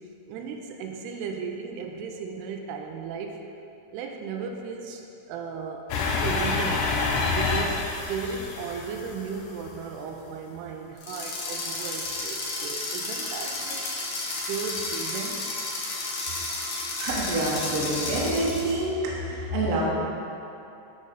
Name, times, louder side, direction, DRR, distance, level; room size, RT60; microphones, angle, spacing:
voice 1, 0.3-3.4 3.9-6.9 7.3-13.9 14.5-15.5 19.3-19.4, right 5 dB, 85° right, 3 dB, 2.6 m, -35 dB
sound 1, 5.9-9.8, left 4 dB, 90° left, 1.8 m, -28 dB
sound 2, 11.0-18.8, left 2 dB, 70° left, 1.6 m, -32 dB
voice 2, 17.0-18.9 19.2-19.8, right 2 dB, 65° right, -4 dB, 1.6 m, -27 dB
10.0 x 4.1 x 5.3 m, 2.7 s
omnidirectional pair, 4.7 m